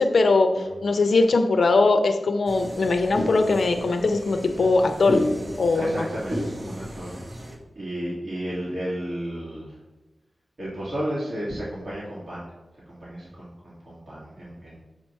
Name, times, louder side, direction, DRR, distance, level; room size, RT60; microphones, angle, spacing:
voice 1, 0.0-0.5 0.8-5.2 5.6-5.9, left 3 dB, 70° left, 6 dB, 0.5 m, -20 dB
sound 1, 2.5-7.6, equal, 30° right, 0.8 m, -33 dB
voice 2, 5.7-9.8 10.6-12.4 12.9-14.8, right 1 dB, 50° right, -9 dB, 1.7 m, -33 dB
7.2 x 2.9 x 5.4 m, 1.1 s
wide cardioid pair, 125°, 0 cm